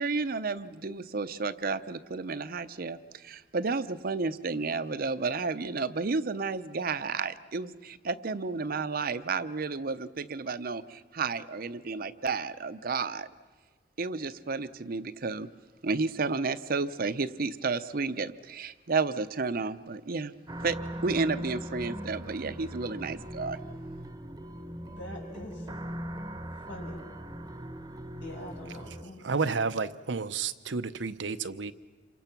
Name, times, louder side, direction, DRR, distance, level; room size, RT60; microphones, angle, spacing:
voice 1, 0.0-13.3 14.0-15.5 15.8-20.3 20.6-20.8 21.0-23.6, right 4 dB, 55° right, 12 dB, 0.7 m, -32 dB
sound 1, 20.5-29.0, equal, 20° right, 0.9 m, -40 dB
voice 2, 24.8-25.8 26.7-27.0 28.2-29.3, left 1 dB, 80° left, -1 dB, 6.5 m, -43 dB
voice 3, 29.2-31.7, right 4 dB, 85° right, 12 dB, 0.8 m, -31 dB
28.0 x 24.0 x 6.0 m, 1.4 s
head